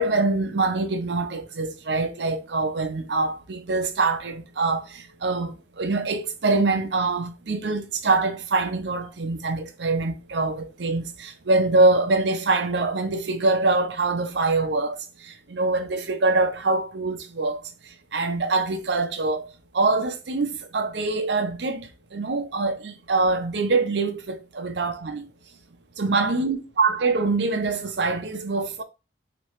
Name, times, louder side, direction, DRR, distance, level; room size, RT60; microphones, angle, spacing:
voice 1, 0.0-17.6 18.1-19.5 19.7-25.3 26.0-28.8, right 3 dB, 70° right, 0.7 m, -24 dB
4.2 x 3.0 x 3.0 m
head